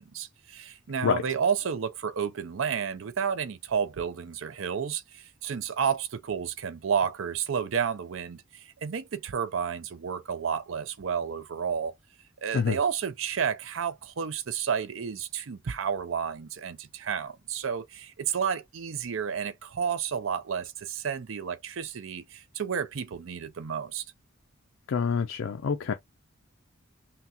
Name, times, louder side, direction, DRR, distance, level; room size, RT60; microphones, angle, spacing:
voice 1, 0.0-12.0 12.4-24.0, right 7 dB, 65° right, 0.5 m, -31 dB
voice 2, 24.9-25.9, left 6 dB, 70° left, 0.4 m, -26 dB
5.8 x 2.3 x 2.8 m
head